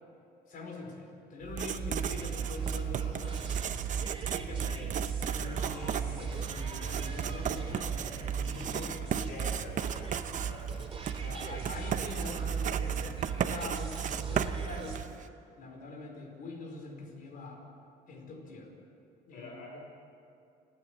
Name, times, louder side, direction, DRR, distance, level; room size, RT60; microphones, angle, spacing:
voice 1, 0.5-4.0 4.3-5.0 5.3-9.4 11.2-15.0 15.6-17.6 18.1-18.7 19.3-19.8, left 3 dB, 55° left, 1 dB, 4.8 m, -44 dB
Writing, 1.4-15.3, right 8 dB, 50° right, 0.8 m, -34 dB
sound 1, 1.9-15.0, right 3 dB, 30° right, 3.7 m, -46 dB
voice 2, 9.3-10.8 19.3-19.7, left 3 dB, 80° left, 0 dB, 3.9 m, -47 dB
29.0 x 9.8 x 10.0 m, 2.5 s
cardioid pair, 110°, 17 cm